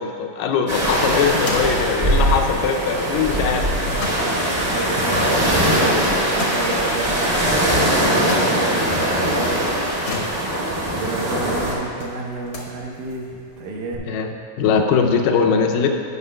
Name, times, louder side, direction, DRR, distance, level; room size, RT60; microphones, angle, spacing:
voice 1, 0.0-3.7 4.7-4.8 10.1-10.3 14.1-15.9, left 6 dB, 80° left, 3 dB, 2.2 m, -21 dB
sound 1, 0.7-14.0, left 2 dB, 65° left, 1.4 m, -38 dB
sound 2, 0.7-11.7, right 1 dB, 25° right, 1.3 m, -21 dB
voice 2, 4.7-6.0 6.3-9.6 10.9-14.1, right 3 dB, 75° right, -1 dB, 2.3 m, -30 dB
18.0 x 6.4 x 2.2 m, 2.4 s
omnidirectional pair, 4.0 m